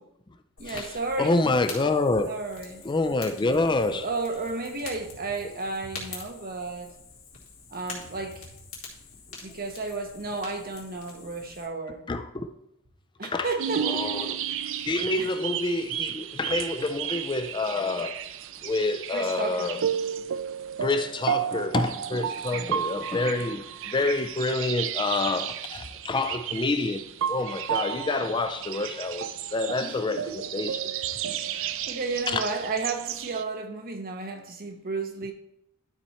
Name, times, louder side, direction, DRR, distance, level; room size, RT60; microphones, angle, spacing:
Fire, 0.6-11.7, left 4 dB, 75° left, 2.4 m, -45 dB
voice 1, 0.6-1.4 2.2-2.8 3.9-6.9 7.7-8.5 9.4-12.1 13.2-14.4 15.2-15.3 19.1-19.9 22.5-22.9 29.8-30.4 31.3-35.3, right 3 dB, 45° right, 1.2 m, -33 dB
voice 2, 1.2-2.3 2.9-4.1 12.1-12.5 13.2-13.5 13.8-14.4 14.9-18.2 18.6-19.8 20.8-30.9 32.3-32.4, left 3 dB, 20° left, 0.4 m, -27 dB
sound 1, 13.6-33.4, right 9 dB, 65° right, 0.4 m, -33 dB
12.0 x 4.3 x 4.3 m
head